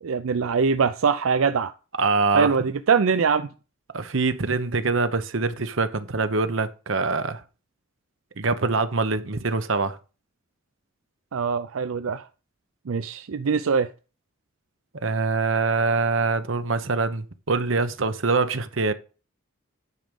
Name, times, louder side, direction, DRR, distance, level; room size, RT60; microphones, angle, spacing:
voice 1, 0.0-1.7 2.3-3.5 11.3-12.2 12.9-13.9, right 5 dB, 90° right, 0.5 m, -23 dB
voice 2, 2.0-2.5 3.9-7.4 8.4-10.0 15.0-18.9, right 3 dB, 70° right, 1.0 m, -24 dB
9.4 x 5.2 x 7.0 m
head